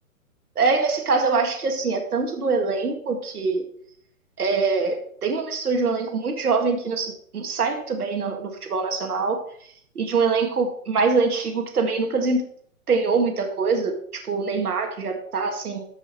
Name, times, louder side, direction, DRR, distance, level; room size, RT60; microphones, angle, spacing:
voice 1, 0.6-3.6 4.4-5.0 5.2-9.4 10.0-12.4 12.9-15.9, right 4 dB, 90° right, 4 dB, 2.0 m, -24 dB
13.5 x 5.6 x 4.5 m, 0.63 s
hypercardioid pair, 150°, 44 cm